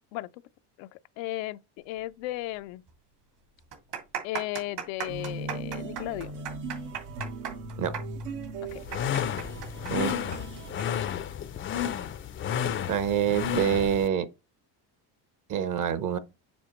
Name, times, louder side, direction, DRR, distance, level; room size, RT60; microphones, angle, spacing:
voice 1, 0.8-1.6 1.8-2.8 4.2-6.5 8.7-8.8, left 16 dB, 85° left, 0.5 m, -35 dB
sound 1, 2.5-2.6 2.9-3.0 3.6-10.9 11.1-11.2 12.0-12.3, right 8 dB, 70° right, 2.6 m, -37 dB
sound 2, 5.1-10.8, right 3 dB, 85° right, 1.3 m, -38 dB
sound 3, 8.7-14.1, left 9 dB, 30° left, 0.4 m, -32 dB
voice 2, 12.9-14.3 15.5-16.2, right 8 dB, 45° right, 0.8 m, -26 dB
7.2 x 4.8 x 3.0 m
cardioid pair, 105°, 43 cm